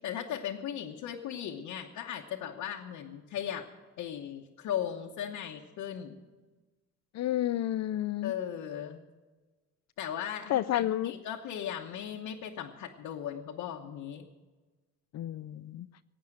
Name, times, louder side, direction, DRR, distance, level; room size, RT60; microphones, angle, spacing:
voice 1, 0.0-3.7 4.0-6.2 8.2-9.0 10.0-14.3, left 9 dB, 90° left, -1 dB, 1.1 m, -37 dB
voice 2, 7.1-8.3 10.5-11.1 15.1-15.9, left 13 dB, 60° left, 14 dB, 0.5 m, -30 dB
16.5 x 8.8 x 7.8 m, 1.3 s
cardioid pair, 90°, 30 cm